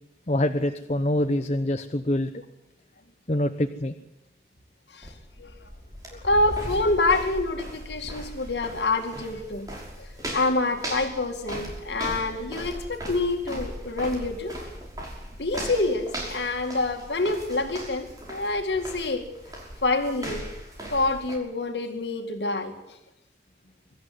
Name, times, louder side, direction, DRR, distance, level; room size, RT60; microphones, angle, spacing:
voice 1, 0.3-2.4 3.3-3.9 6.1-6.2, left 1 dB, 40° left, 7 dB, 0.9 m, -25 dB
sound 1, 5.0-21.4, equal, 20° right, 5.7 m, -38 dB
voice 2, 6.2-9.7 10.0-10.1 10.3-14.5 15.4-19.2 19.8-20.5 20.9-22.7, left 2 dB, 80° left, 4 dB, 2.3 m, -26 dB
24.5 x 13.5 x 9.7 m, 0.90 s
head